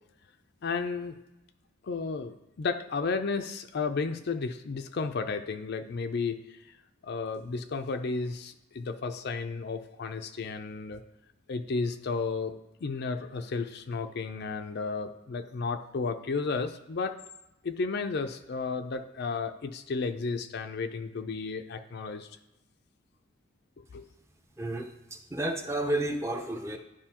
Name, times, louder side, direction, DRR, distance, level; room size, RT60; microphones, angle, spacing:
voice 1, 0.6-1.2 1.8-6.8 7.0-11.0 11.5-17.2 17.6-22.3 23.9-24.0, left 4 dB, 55° left, 8 dB, 0.5 m, -33 dB
voice 2, 24.6-26.8, right 1 dB, 15° right, 4 dB, 0.6 m, -31 dB
11.0 x 4.9 x 2.9 m, 0.95 s
head